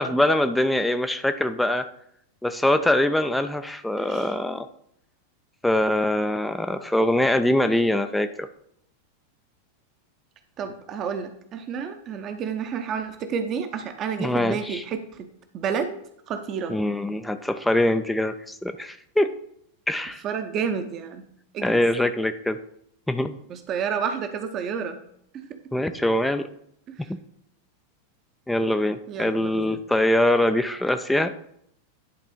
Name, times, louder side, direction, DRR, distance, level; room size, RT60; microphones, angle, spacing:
voice 1, 0.0-1.9 2.4-4.7 5.6-8.5 14.2-14.8 16.7-19.3 19.9-20.2 21.6-22.6 23.1-23.4 25.7-26.4 28.5-31.3, left 1 dB, 5° left, 9 dB, 0.4 m, -23 dB
voice 2, 4.0-4.3 10.6-15.0 15.5-16.0 16.3-16.7 20.2-21.2 21.5-21.8 23.5-25.0 26.9-27.0 29.1-29.8, right 6 dB, 30° right, 8 dB, 0.7 m, -30 dB
10.5 x 4.0 x 3.7 m, 0.69 s
figure-of-eight pair, 90°, 0 cm